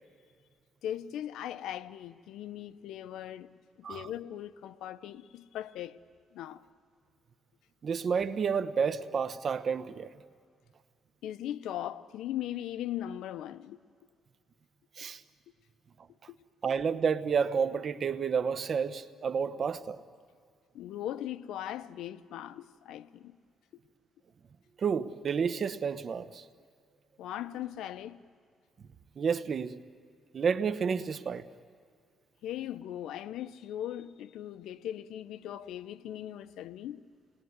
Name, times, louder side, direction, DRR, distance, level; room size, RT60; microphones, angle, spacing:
voice 1, 0.8-6.0 6.3-6.6 11.2-13.8 20.7-23.4 27.2-28.2 32.4-37.0, left 11 dB, 85° left, 0.7 m, -39 dB
voice 2, 7.8-10.1 15.0-15.2 16.6-20.0 24.8-26.4 29.2-29.8 30.3-31.5, right 6 dB, 50° right, 1.0 m, -30 dB
29.0 x 20.5 x 9.6 m
cardioid pair, 90°, 0 cm